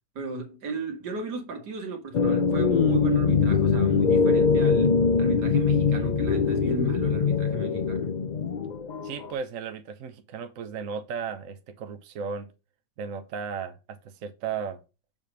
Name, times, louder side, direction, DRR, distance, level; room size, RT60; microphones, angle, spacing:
voice 1, 0.2-8.1, right 4 dB, 85° right, 2.2 m, -34 dB
sound 1, 2.1-9.3, left 5 dB, 80° left, 0.4 m, -23 dB
voice 2, 9.0-12.5 13.0-14.8, right 6 dB, 60° right, 1.1 m, -35 dB
7.5 x 3.5 x 6.2 m
omnidirectional pair, 1.7 m